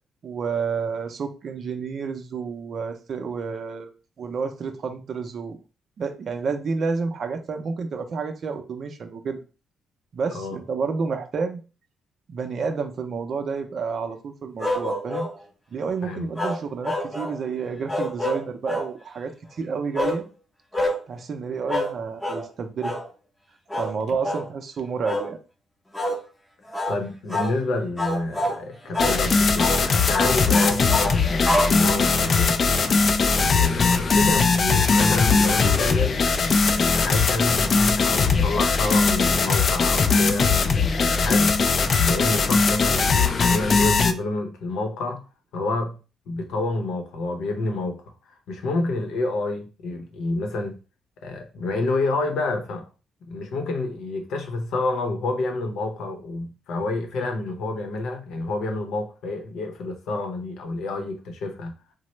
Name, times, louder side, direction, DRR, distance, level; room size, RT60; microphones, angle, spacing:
voice 1, 0.2-3.9 4.2-5.6 6.0-9.4 10.1-11.6 12.3-15.3 15.7-20.2 21.1-22.9 23.7-25.4 28.8-29.0, right 5 dB, 55° right, 0.5 m, -30 dB
sound 1, 14.6-15.4 16.4-17.4 17.9-18.9 19.9-20.2 20.7-21.0 21.7-21.9 22.2-22.5 22.8-23.1 23.7-23.9 24.2-24.5 25.0-25.3 25.9-26.2 26.7-27.0 27.3-27.6 28.0-28.6 28.9-29.2 29.6-29.8 30.1-32.2, left 1 dB, 15° left, 0.6 m, -26 dB
voice 2, 26.9-30.9 31.2-32.8 33.3-36.2 36.6-40.6 41.1-41.6 42.0-45.2 45.5-46.0 46.3-48.0 48.5-50.8 51.2-52.9 53.2-61.8, left 2 dB, 80° left, 0.7 m, -28 dB
sound 2, 29.0-44.1, left 4 dB, 45° left, 0.3 m, -20 dB
3.0 x 2.0 x 3.1 m
cardioid pair, 90°, 0 cm